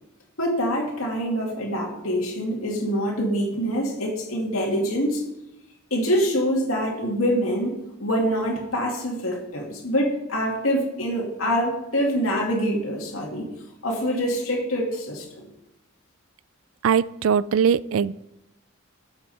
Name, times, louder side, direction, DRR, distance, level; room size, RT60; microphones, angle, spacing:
voice 1, 0.4-5.2 5.9-13.5 13.8-15.5, equal, 90° left, -2 dB, 2.5 m, -25 dB
voice 2, 16.8-18.2, right 7 dB, 75° right, 19 dB, 0.4 m, -21 dB
13.0 x 8.0 x 4.3 m, 0.87 s
head